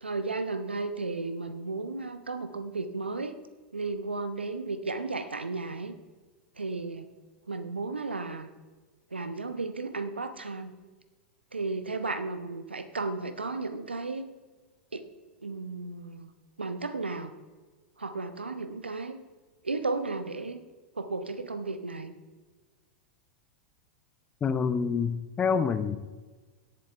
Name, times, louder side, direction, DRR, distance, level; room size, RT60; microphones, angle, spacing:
voice 1, 0.0-3.4 3.7-5.9 6.6-7.1 7.5-8.5 9.1-10.7 11.5-14.3 14.9-15.1 15.4-16.3 16.6-17.3 18.0-19.2 19.6-20.6 21.0-22.1, right 3 dB, 90° right, 10 dB, 0.9 m, -34 dB
voice 2, 24.4-26.0, left 6 dB, 25° left, 12 dB, 0.8 m, -27 dB
17.5 x 7.8 x 3.4 m, 1.3 s
figure-of-eight pair, 95°, 6 cm